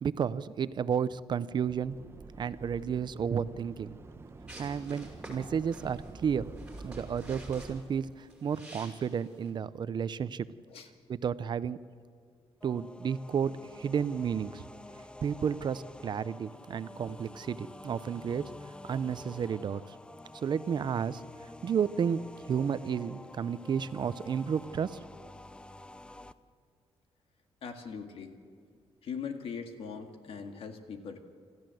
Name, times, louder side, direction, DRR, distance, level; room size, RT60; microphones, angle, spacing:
voice 1, 0.0-2.0 2.4-4.0 4.6-6.5 6.8-10.5 11.1-11.8 12.6-14.7 15.2-18.4 18.8-19.8 20.4-21.2 21.6-22.2 22.5-25.0, right 7 dB, 50° right, 15 dB, 0.6 m, -32 dB
sound 1, 1.7-7.8, right 3 dB, 25° right, 1.0 m, -47 dB
sound 2, 4.5-9.5, right 1 dB, 10° right, 5.6 m, -50 dB
sound 3, 12.6-26.3, left 1 dB, 10° left, 0.6 m, -49 dB
voice 2, 27.6-28.3 29.0-31.2, left 6 dB, 75° left, 6 dB, 2.0 m, -40 dB
27.5 x 14.0 x 7.8 m, 2.1 s
cardioid pair, 125°, 10 cm